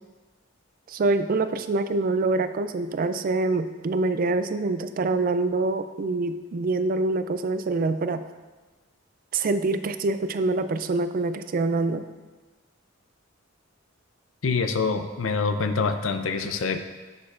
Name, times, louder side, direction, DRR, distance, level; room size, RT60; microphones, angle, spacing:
voice 1, 0.9-8.2 9.3-12.0, right 3 dB, 45° right, 11 dB, 0.4 m, -25 dB
voice 2, 14.4-16.8, left 4 dB, 80° left, 8 dB, 0.6 m, -25 dB
10.0 x 6.4 x 2.5 m, 1.3 s
head